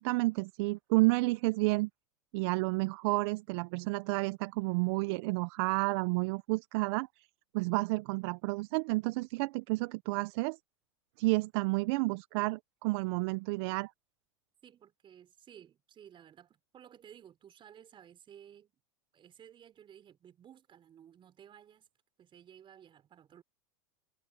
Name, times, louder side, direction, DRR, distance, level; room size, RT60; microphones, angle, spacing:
voice 1, 0.0-1.9 2.3-7.1 7.5-10.6 11.2-13.9, right 24 dB, 60° right, 0.8 m, -30 dB
voice 2, 14.6-18.7 19.1-21.9 22.2-23.4, right 9 dB, 35° right, 5.6 m, -56 dB
hypercardioid pair, 100°, 16 cm